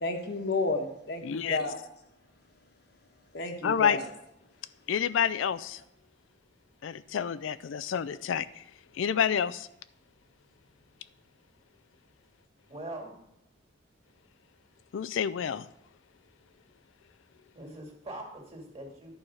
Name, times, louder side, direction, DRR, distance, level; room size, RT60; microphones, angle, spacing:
voice 1, 0.0-1.8 3.3-4.1, left 2 dB, 55° left, 4 dB, 1.2 m, -31 dB
voice 2, 1.2-1.6 3.6-4.0 4.9-5.8 6.8-8.6 8.9-9.7 14.9-15.7, left 8 dB, 80° left, 15 dB, 0.4 m, -28 dB
voice 3, 12.7-13.2 17.5-19.1, right 1 dB, 30° right, 0 dB, 2.3 m, -42 dB
11.0 x 4.7 x 6.3 m, 0.80 s
head